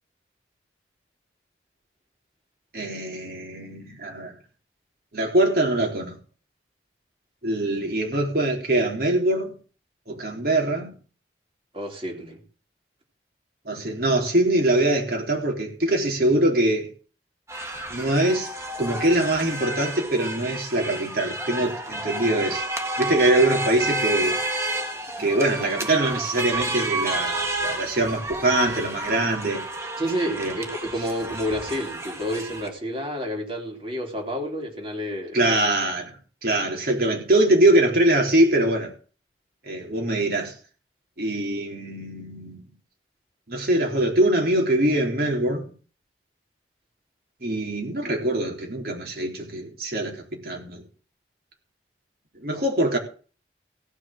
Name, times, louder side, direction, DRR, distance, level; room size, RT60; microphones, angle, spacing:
voice 1, 2.7-4.3 5.1-6.2 7.4-9.6 10.1-10.9 13.7-16.9 17.9-18.5 18.8-22.6 23.0-24.4 25.2-29.6 30.4-30.5 35.3-36.2 36.4-38.9 39.7-40.5 41.2-42.7 43.5-45.7 47.4-50.8 52.4-53.0, right 1 dB, 55° right, 4.0 m, -23 dB
voice 2, 11.7-12.4 30.0-35.6, equal, 30° right, 3.5 m, -30 dB
sound 1, 17.5-32.7, right 2 dB, 15° right, 1.7 m, -30 dB
16.5 x 6.3 x 7.5 m
head